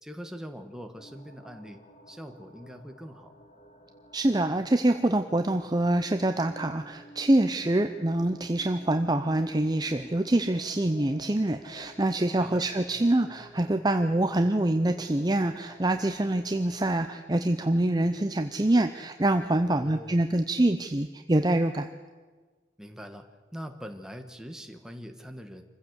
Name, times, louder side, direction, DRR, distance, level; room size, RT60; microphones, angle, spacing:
voice 1, 0.0-1.8 2.1-3.3 12.4-12.7 19.6-20.2 22.8-25.6, equal, 5° right, 5 dB, 1.4 m, -42 dB
sound 1, 1.0-17.1, equal, 35° left, 1.8 m, -52 dB
voice 2, 4.1-21.9, right 1 dB, 20° right, 7 dB, 0.6 m, -25 dB
26.0 x 15.5 x 8.0 m, 1.4 s
head